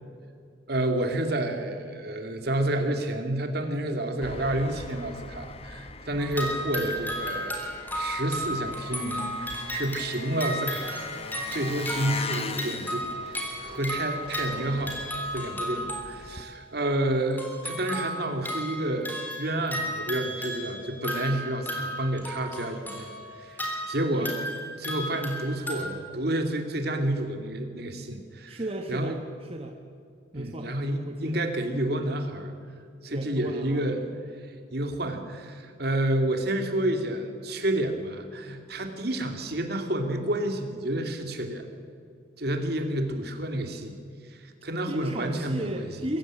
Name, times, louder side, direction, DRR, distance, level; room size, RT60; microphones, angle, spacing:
voice 1, 0.7-7.6 7.9-11.1 11.5-15.0 15.3-23.1 23.4-24.4 24.8-28.6 28.9-29.2 30.3-32.5 33.0-34.1 34.4-41.6 42.4-43.9 44.3-45.8, right 1 dB, 55° right, 5 dB, 2.6 m, -30 dB
Engine, 4.2-16.4, left 4 dB, 30° left, 1.3 m, -41 dB
sound 1, 6.2-16.4 17.3-25.8, equal, 10° left, 3.6 m, -34 dB
voice 2, 28.5-29.8 30.3-30.7 31.0-31.4 33.1-33.8 34.1-34.2 44.9-46.2, right 1 dB, 30° right, 4 dB, 1.2 m, -35 dB
23.0 x 15.5 x 9.9 m, 2.3 s
head